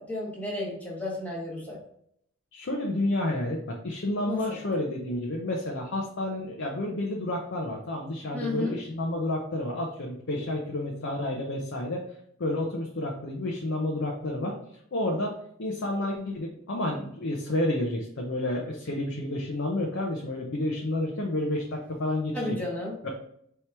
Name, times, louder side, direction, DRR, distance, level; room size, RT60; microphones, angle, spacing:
voice 1, 0.0-1.8 4.2-4.6 8.3-8.8 22.3-22.9, left 2 dB, 5° left, -4 dB, 1.1 m, -33 dB
voice 2, 2.5-12.0 12.4-14.6 14.9-22.6 23.0-23.1, left 1 dB, 55° left, -1 dB, 0.6 m, -30 dB
4.5 x 2.9 x 3.3 m, 0.70 s
head